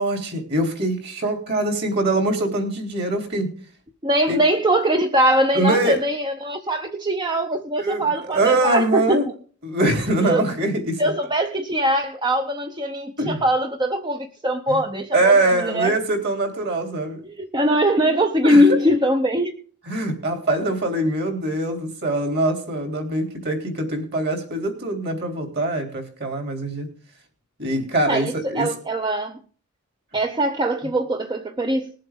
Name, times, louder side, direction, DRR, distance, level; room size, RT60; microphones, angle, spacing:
voice 1, 0.0-3.5 4.3-4.4 5.5-6.0 7.8-9.3 9.6-11.0 13.2-13.4 14.7-14.8 15.1-17.2 18.4-18.8 19.9-26.9 27.6-28.7, right 2 dB, 45° right, 3.2 m, -23 dB
voice 2, 4.0-9.2 10.2-10.4 11.0-16.0 17.2-19.6 28.1-29.4 30.1-31.9, equal, 20° right, 0.7 m, -21 dB
20.5 x 7.6 x 3.6 m
head